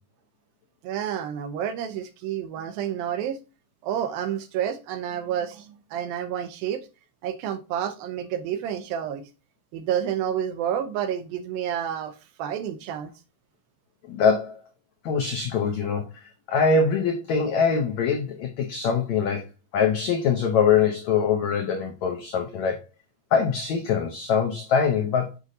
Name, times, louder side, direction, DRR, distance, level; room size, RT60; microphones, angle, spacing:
voice 1, 0.8-3.4 3.8-6.9 7.2-9.2 9.7-13.1, right 9 dB, 80° right, 2.4 m, -29 dB
voice 2, 14.1-14.6 15.0-19.5 19.7-22.8 23.3-25.3, left 6 dB, 85° left, 1.6 m, -23 dB
8.2 x 5.0 x 2.7 m
omnidirectional pair, 4.4 m